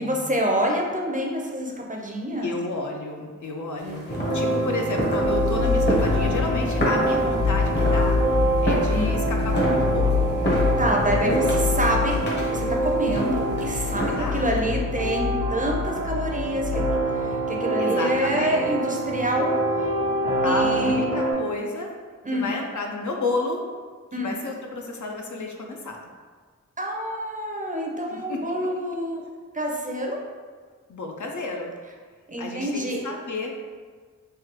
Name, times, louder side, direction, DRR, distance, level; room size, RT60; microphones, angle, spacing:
voice 1, 0.0-2.5 3.8-4.3 8.9-9.2 10.8-16.8 17.1-19.6 20.4-21.0 22.2-22.5 24.1-24.3 26.8-29.2 29.5-30.2 32.3-33.0, equal, 25° right, -1 dB, 0.5 m, -27 dB
voice 2, 2.4-10.4 11.2-11.6 13.9-14.5 17.8-18.6 20.4-21.9 22.3-23.6 24.2-26.0 28.1-28.4 30.9-31.7 32.4-33.5, left 2 dB, 65° left, 1 dB, 0.5 m, -31 dB
sound 1, 3.8-14.5, equal, 35° left, 0.8 m, -30 dB
sound 2, 4.1-21.3, right 2 dB, 90° left, 0.8 m, -26 dB
sound 3, 5.2-16.9, left 6 dB, 80° right, 0.9 m, -27 dB
3.3 x 2.2 x 2.9 m, 1.5 s
wide cardioid pair, 50°, 32 cm